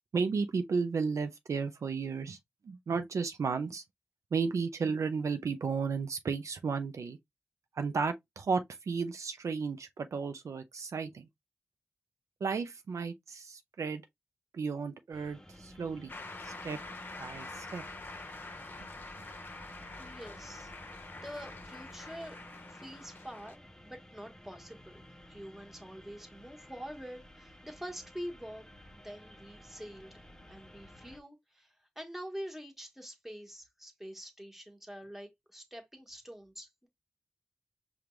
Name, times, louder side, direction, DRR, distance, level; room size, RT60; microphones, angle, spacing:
voice 1, 0.1-2.4 2.6-3.8 4.3-7.2 7.8-11.3 12.4-14.0 14.5-16.1 16.4-16.8 17.2-17.8, right 5 dB, 75° right, 0.5 m, -33 dB
sound 1, 15.1-31.2, equal, 10° left, 0.6 m, -53 dB
Shout / Cheering / Applause, 16.1-23.6, left 3 dB, 40° left, 0.8 m, -46 dB
voice 2, 20.0-20.7 21.1-22.4 22.7-28.6 28.9-30.2 30.5-36.9, equal, 5° right, 1.2 m, -46 dB
5.1 x 2.3 x 3.0 m
wide cardioid pair, 85°, 5 cm